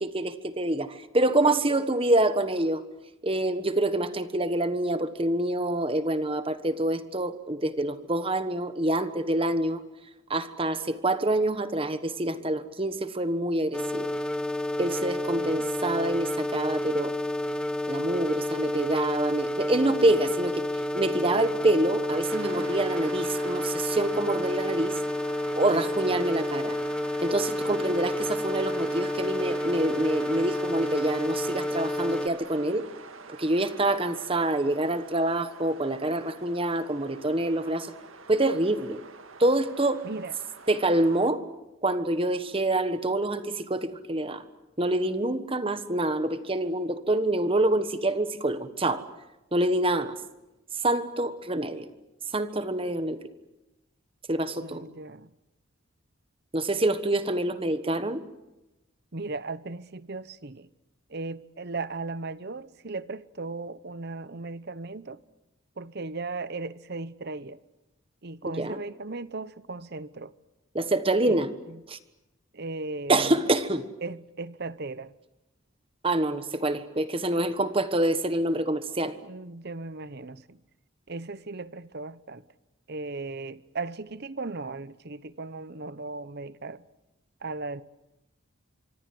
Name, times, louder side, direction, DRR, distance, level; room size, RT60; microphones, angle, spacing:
voice 1, 0.0-2.8 3.2-9.8 10.3-14.1 14.8-17.1 17.9-20.6 20.9-25.0 25.5-26.8 27.2-32.9 33.4-37.9 38.3-39.0 39.4-40.0 40.7-41.4 41.8-44.4 44.8-49.0 49.5-50.1 50.8-51.9 52.3-53.2 54.3-54.8 56.5-58.2 68.4-68.8 70.7-71.5 71.9-72.0 73.1-73.9 76.0-79.1, right 1 dB, 25° right, 1.3 m, -26 dB
sound 1, 13.7-32.3, left 1 dB, 5° left, 0.9 m, -30 dB
sound 2, 22.3-41.3, right 4 dB, 75° right, 1.9 m, -45 dB
voice 2, 40.0-40.3 54.6-55.3 59.1-60.7 61.1-65.2 65.8-67.6 68.2-70.3 71.3-71.4 71.7-71.8 72.5-73.4 74.0-75.1 79.2-80.6 81.1-82.4 82.9-86.8 87.4-87.8, right 3 dB, 50° right, 0.9 m, -37 dB
25.5 x 24.5 x 7.8 m
head